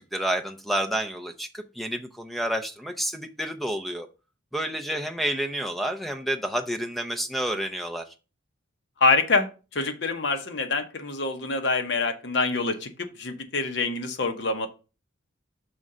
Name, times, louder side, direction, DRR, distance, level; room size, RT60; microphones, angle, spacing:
voice 1, 0.0-4.1 4.5-8.0, right 1 dB, ahead, 5 dB, 0.6 m, -29 dB
voice 2, 9.0-14.7, left 3 dB, 55° left, 6 dB, 1.0 m, -26 dB
6.2 x 3.7 x 5.4 m, 0.32 s
head